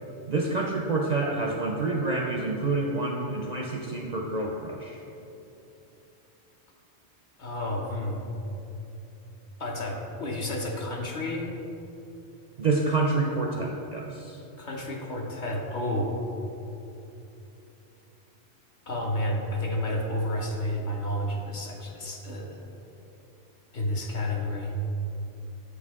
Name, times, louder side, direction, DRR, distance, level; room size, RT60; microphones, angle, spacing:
voice 1, 0.3-5.0 12.6-14.4, right 3 dB, 55° right, 0 dB, 0.5 m, -28 dB
voice 2, 7.4-8.2 9.6-11.5 14.6-16.1 18.9-22.6 23.7-24.7, left 1 dB, 50° left, 0 dB, 0.8 m, -31 dB
7.8 x 4.8 x 3.6 m, 2.9 s
omnidirectional pair, 1.1 m